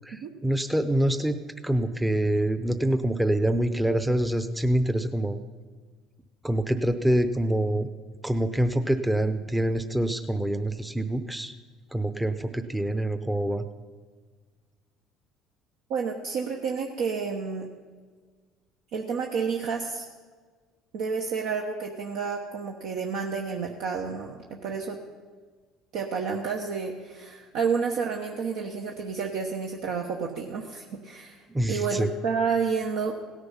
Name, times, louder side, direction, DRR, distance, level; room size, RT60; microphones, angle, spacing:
voice 1, 0.0-1.4 1.6-5.4 6.4-7.9 8.2-11.5 11.9-13.7 31.5-32.1, right 1 dB, 5° right, 9 dB, 0.7 m, -26 dB
voice 2, 15.9-17.7 18.9-20.1 20.9-25.0 25.9-33.1, right 5 dB, 70° right, 1 dB, 1.1 m, -30 dB
17.0 x 9.6 x 5.7 m, 1.5 s
supercardioid pair, 85°, 0 cm